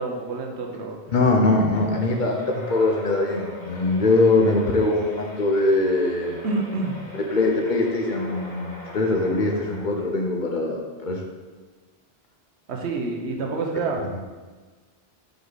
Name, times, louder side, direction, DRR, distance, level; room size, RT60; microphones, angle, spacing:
voice 1, 0.0-1.0 6.4-7.0 12.7-14.0, right 3 dB, 75° right, 1 dB, 1.1 m, -28 dB
voice 2, 1.1-6.4 7.1-11.2, left 2 dB, 50° left, 1 dB, 0.8 m, -22 dB
sound 1, 1.7-10.5, left 1 dB, 85° left, 1.5 m, -41 dB
5.3 x 4.6 x 4.0 m, 1.4 s
omnidirectional pair, 1.1 m